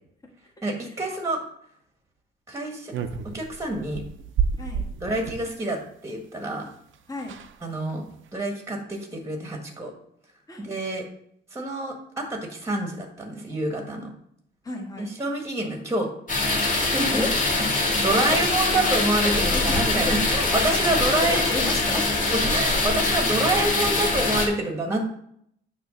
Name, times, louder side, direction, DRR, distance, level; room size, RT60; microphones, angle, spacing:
voice 1, 0.6-1.4 2.5-2.9 3.3-4.0 5.0-6.6 7.6-8.0 8.3-9.9 10.6-11.0 11.5-14.1 15.0-16.1 16.6-17.2 17.8-21.5 22.3-25.1, right 2 dB, 15° right, 2 dB, 1.4 m, -27 dB
sound 1, 2.9-5.5 6.7-6.8 6.9-7.0 7.2-7.6 8.0-8.3, right 6 dB, 65° right, 0.7 m, -30 dB
voice 2, 4.6-4.9 7.1-7.3 10.5-10.7 14.6-15.1 17.1-17.3 18.1-18.5 19.2-20.1 20.5-22.2, left 2 dB, 15° left, 0 dB, 1.6 m, -33 dB
chaudiere-defaut, 16.3-24.5, left 2 dB, 40° left, 2.5 m, -23 dB
9.3 x 3.1 x 6.3 m, 0.70 s
cardioid pair, 125°, 21 cm